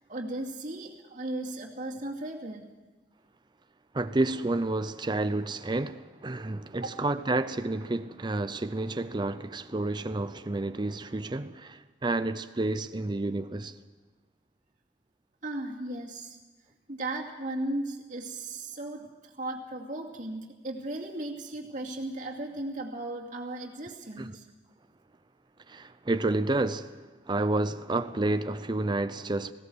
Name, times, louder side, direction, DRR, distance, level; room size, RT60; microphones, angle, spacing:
voice 1, 0.1-2.7 6.8-6.9 15.4-16.4 16.9-24.4, right 2 dB, 45° right, 2.4 m, -36 dB
voice 2, 3.9-13.8 24.2-24.3 25.7-29.5, right 2 dB, 25° right, 0.6 m, -30 dB
19.5 x 17.0 x 8.0 m
head